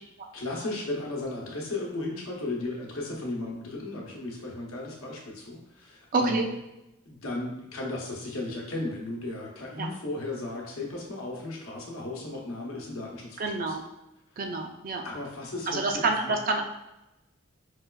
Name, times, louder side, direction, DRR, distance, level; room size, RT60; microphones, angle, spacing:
voice 1, 0.3-6.5 7.0-13.8 14.3-14.4 15.0-16.3, left 2 dB, 85° left, -2 dB, 0.8 m, -35 dB
voice 2, 6.1-6.5 9.8-9.9 13.4-13.8 14.4-15.0 15.7-16.6, right 3 dB, 40° right, 3 dB, 0.3 m, -27 dB
4.7 x 2.2 x 2.3 m, 0.92 s
head